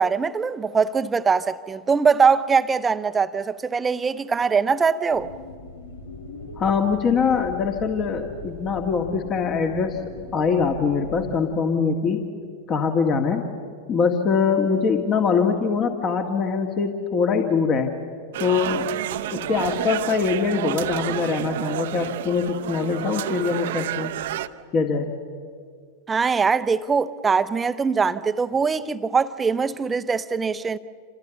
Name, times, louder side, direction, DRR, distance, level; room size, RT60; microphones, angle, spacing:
voice 1, 0.0-5.3 26.1-30.8, right 5 dB, 15° right, 0.8 m, -22 dB
sound 1, 5.1-11.4, left 2 dB, 75° left, 2.8 m, -40 dB
voice 2, 6.6-10.0 10.3-12.2 12.7-13.5 13.9-17.9 18.4-19.0 19.3-24.1 24.7-25.1, left 5 dB, 30° left, 1.8 m, -23 dB
sound 2, 18.3-24.5, right 12 dB, 55° right, 0.8 m, -30 dB
28.0 x 27.0 x 7.1 m
figure-of-eight pair, 90°, 0 cm